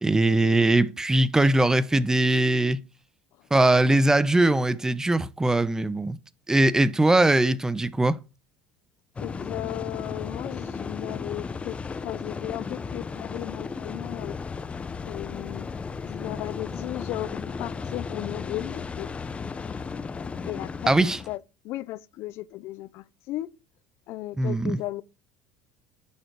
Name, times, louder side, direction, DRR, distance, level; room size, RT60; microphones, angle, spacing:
voice 1, 0.0-2.8 3.5-6.2 6.5-8.2 20.9-21.2 24.4-24.8, right 2 dB, 10° right, 0.9 m, -21 dB
voice 2, 9.2-14.4 15.0-15.7 16.0-19.1 20.4-20.9 21.3-21.4 21.6-23.5 24.1-25.0, left 16 dB, 65° left, 0.8 m, -35 dB
sound 1, 9.2-21.4, left 5 dB, 25° left, 1.1 m, -35 dB
11.0 x 6.5 x 4.8 m
supercardioid pair, 90°, 5 cm